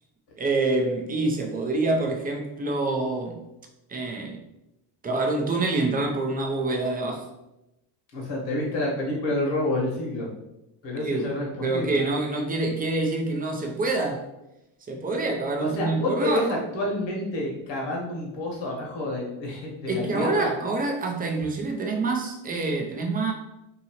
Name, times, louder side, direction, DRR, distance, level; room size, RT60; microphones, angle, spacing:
voice 1, 0.4-3.4 3.9-4.4 5.0-7.3 11.0-11.3 11.6-14.2 14.9-16.6 19.9-23.3, right 3 dB, 20° right, 2 dB, 0.5 m, -26 dB
voice 2, 8.1-10.3 10.8-12.0 15.6-20.5, left 1 dB, 65° left, -2 dB, 1.3 m, -28 dB
2.8 x 2.7 x 2.8 m, 0.91 s
supercardioid pair, 95°, 47 cm